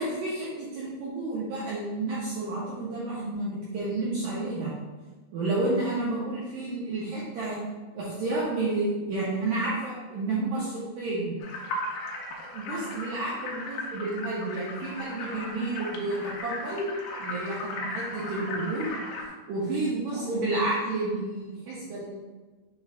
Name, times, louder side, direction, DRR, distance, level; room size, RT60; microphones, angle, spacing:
voice 1, 0.0-4.7 5.3-7.6 7.9-11.4 12.5-16.8 17.2-18.9 19.5-22.1, right 2 dB, 80° right, -7 dB, 1.9 m, -30 dB
sound 1, 11.4-19.3, left 2 dB, 80° left, 2.4 m, -37 dB
6.4 x 2.4 x 3.4 m, 1.3 s
omnidirectional pair, 4.8 m